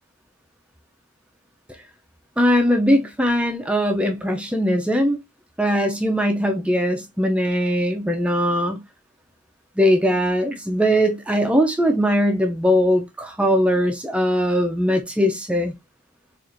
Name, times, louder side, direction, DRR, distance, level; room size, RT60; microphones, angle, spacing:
voice 1, 2.4-5.2 5.6-8.8 9.8-15.7, equal, 5° right, 0.4 m, -20 dB
4.4 x 2.4 x 2.5 m
head